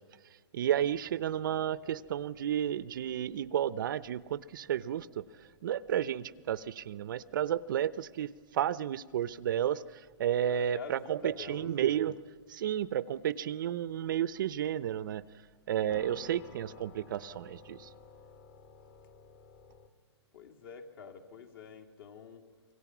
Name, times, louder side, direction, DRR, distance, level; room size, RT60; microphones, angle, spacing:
voice 1, 0.5-12.2 12.5-15.2 15.7-17.9, right 10 dB, 45° right, 17 dB, 0.6 m, -32 dB
sound 1, 0.7-19.9, left 5 dB, 30° left, 1.5 m, -58 dB
voice 2, 10.4-12.0 20.3-22.4, left 6 dB, 50° left, 3 dB, 2.7 m, -48 dB
26.0 x 24.0 x 6.1 m, 1.4 s
hypercardioid pair, 160°, 15 cm